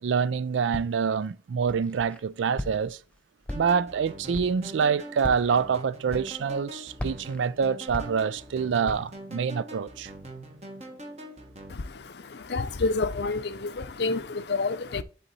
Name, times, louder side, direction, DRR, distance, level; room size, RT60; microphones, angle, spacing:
voice 1, 0.0-3.0 3.5-10.1, right 6 dB, 85° right, 0.4 m, -26 dB
Walk footsteps, 0.7-1.2 1.7-2.2 2.6-3.0 3.4-4.0 4.3-4.7 5.2-5.6 6.1-6.6 7.0-8.5 8.8-9.2, left 1 dB, 5° left, 0.5 m, -37 dB
sound 1, 3.5-11.7, right 1 dB, 35° right, 1.3 m, -43 dB
voice 2, 11.7-15.0, left 3 dB, 65° left, 0.6 m, -29 dB
8.2 x 4.1 x 4.1 m
head